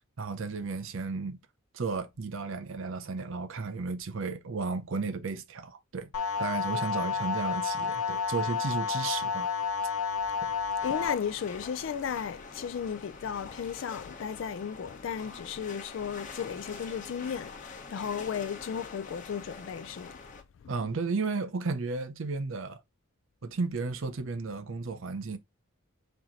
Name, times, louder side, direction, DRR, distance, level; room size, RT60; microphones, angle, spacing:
voice 1, 0.0-1.4 1.7-6.1 6.4-9.5 10.4-10.5 20.7-22.8 23.4-25.4, right 4 dB, 65° right, 0.6 m, -33 dB
sound 1, 6.1-11.1, left 6 dB, 90° left, 0.9 m, -30 dB
voice 2, 10.8-20.1, left 7 dB, 60° left, 0.3 m, -35 dB
sound 2, 10.8-20.4, left 4 dB, 35° left, 0.9 m, -45 dB
4.5 x 2.8 x 3.7 m
head